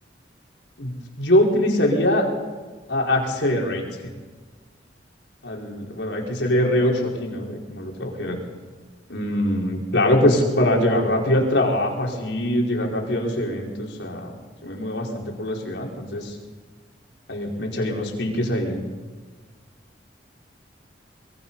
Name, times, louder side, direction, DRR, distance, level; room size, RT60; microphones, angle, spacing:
voice 1, 1.2-2.2 2.9-4.1 5.4-8.4 9.1-14.4 14.6-16.3 17.3-18.8, left 1 dB, 85° left, -1 dB, 4.9 m, -23 dB
23.5 x 22.5 x 5.6 m, 1.4 s
head